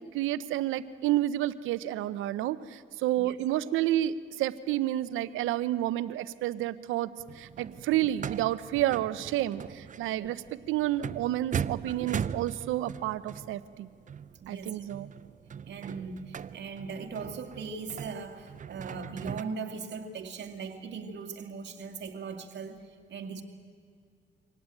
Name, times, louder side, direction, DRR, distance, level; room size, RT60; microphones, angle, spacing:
voice 1, 0.1-7.1 7.3-10.4 10.7-13.9 14.5-15.1, right 14 dB, 90° right, 15 dB, 0.8 m, -30 dB
sound 1, 7.2-19.4, right 8 dB, 40° right, 0.6 m, -39 dB
voice 2, 14.4-14.9 15.6-23.4, right 5 dB, 60° right, 5 dB, 2.3 m, -39 dB
24.5 x 18.0 x 9.1 m, 2.1 s
cardioid pair, 90°, 20 cm